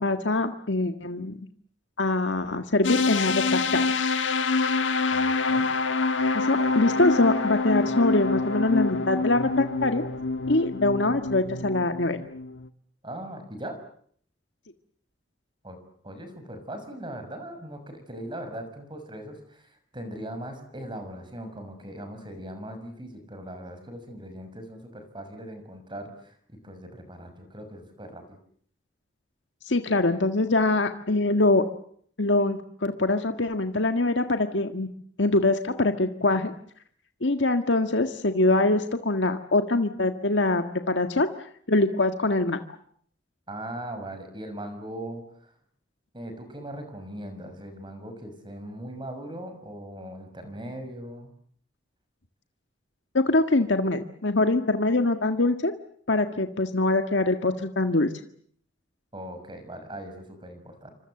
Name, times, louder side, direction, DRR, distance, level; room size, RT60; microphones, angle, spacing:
voice 1, 0.0-1.4 2.0-3.8 6.3-10.0 10.5-12.2 29.6-31.6 32.2-34.9 35.2-36.5 37.2-41.3 41.7-42.6 53.1-55.7 56.1-58.1, left 2 dB, 70° left, 7 dB, 1.7 m, -23 dB
sound 1, 2.8-12.7, left 3 dB, 90° left, 1.5 m, -26 dB
voice 2, 5.1-5.7 13.0-13.8 15.6-15.8 16.0-28.4 43.5-45.5 46.1-51.3 59.1-60.9, right 1 dB, 25° right, 8 dB, 6.3 m, -39 dB
28.5 x 25.5 x 7.9 m, 0.62 s
head